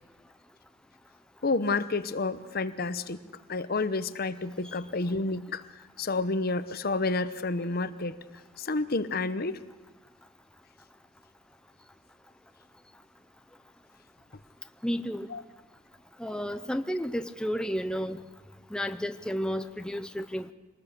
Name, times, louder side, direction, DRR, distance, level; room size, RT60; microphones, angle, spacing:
voice 1, 1.4-3.2 3.5-5.6 6.0-8.2 8.6-9.6 15.3-15.4, left 3 dB, 50° left, 13 dB, 0.9 m, -29 dB
voice 2, 14.8-15.3 16.2-18.2 18.7-20.5, equal, 5° left, 8 dB, 0.7 m, -32 dB
25.0 x 20.0 x 6.8 m, 1.2 s
head